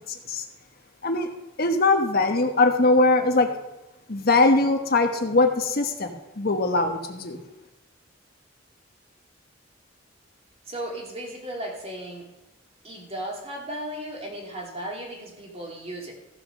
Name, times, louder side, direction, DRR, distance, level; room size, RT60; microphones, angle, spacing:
voice 1, 1.6-3.5 4.1-7.4, left 3 dB, 50° left, 5 dB, 1.3 m, -21 dB
voice 2, 10.7-12.3 12.8-16.1, right 1 dB, 30° right, 0 dB, 2.7 m, -35 dB
15.0 x 6.5 x 6.5 m, 1.0 s
head